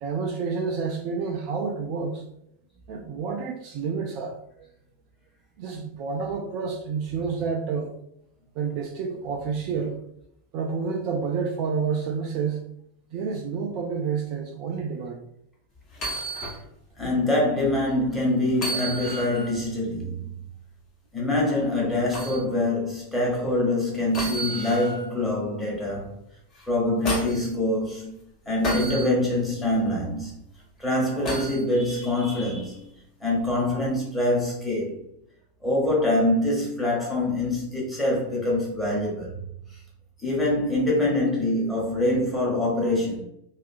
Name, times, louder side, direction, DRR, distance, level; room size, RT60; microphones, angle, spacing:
voice 1, 0.0-2.2 2.9-4.4 5.6-7.9 8.6-10.0 10.5-12.7 13.1-15.2, right 5 dB, 45° right, 0.3 m, -29 dB
sound 1, 15.9-16.6 17.0-17.1 18.5-19.6 22.1-22.4 24.1-25.1 26.6-27.5 28.6-29.1 31.2-31.6 33.4-33.5, right 1 dB, 35° left, 0.9 m, -31 dB
voice 2, 17.0-20.3 21.1-26.1 26.7-28.2 28.5-30.3 30.8-32.8 33.2-35.0 35.6-39.4 39.7-39.8 40.2-43.2, left 1 dB, 5° left, 1.0 m, -25 dB
2.6 x 2.4 x 2.4 m
figure-of-eight pair, 90°, 0 cm